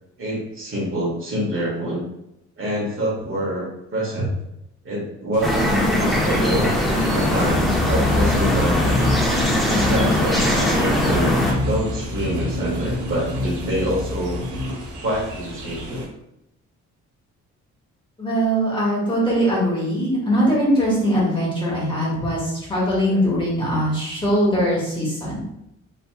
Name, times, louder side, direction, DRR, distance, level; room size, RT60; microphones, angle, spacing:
voice 1, 0.2-2.0 2.6-4.3 4.8-6.8 7.1-9.1 9.7-14.5 15.0-16.0 23.1-23.2, right 1 dB, 45° right, -5 dB, 1.3 m, -26 dB
sound 1, 5.3-16.0, left 2 dB, 75° right, 0.8 m, -28 dB
sound 2, 5.4-11.5, left 1 dB, ahead, 0.6 m, -20 dB
voice 2, 18.2-25.4, equal, 15° left, -7 dB, 1.5 m, -21 dB
3.2 x 2.8 x 2.2 m, 0.84 s
cardioid pair, 90°, 30 cm